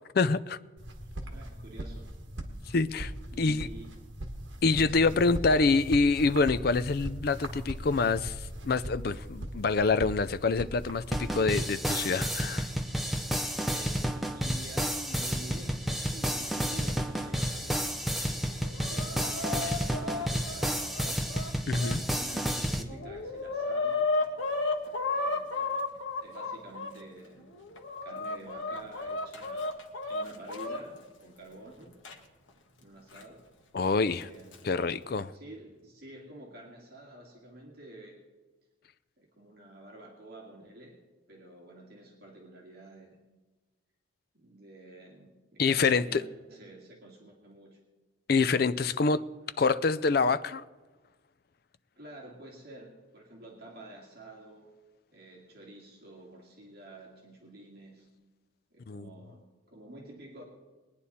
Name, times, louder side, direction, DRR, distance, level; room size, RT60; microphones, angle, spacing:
voice 1, 0.1-0.6 2.7-3.1 3.4-3.7 4.6-12.7 21.7-22.0 33.7-34.3 34.6-35.3 45.6-46.2 48.3-49.3 49.6-50.6 58.9-59.0, left 4 dB, 50° left, 0.4 m, -26 dB
sound 1, 0.8-11.7, right 1 dB, 70° right, 1.6 m, -40 dB
voice 2, 1.2-2.1 3.3-3.9 4.9-5.2 13.5-21.3 22.1-24.1 25.1-25.9 26.2-27.5 28.0-29.7 30.1-32.0 32.8-33.4 34.0-34.8 35.3-38.2 39.2-41.0 41.3-43.2 44.3-47.8 52.0-54.7 55.1-58.1 58.7-59.4 59.7-60.4, right 1 dB, 50° right, 2.1 m, -49 dB
sound 2, 11.1-22.8, equal, ahead, 0.7 m, -31 dB
Chicken rooster, 18.5-22.0 22.5-22.6 22.9-26.9 27.5-30.8 32.0-32.1 33.1-33.2 34.2-34.6, left 3 dB, 80° left, 1.4 m, -33 dB
21.0 x 9.8 x 4.2 m
head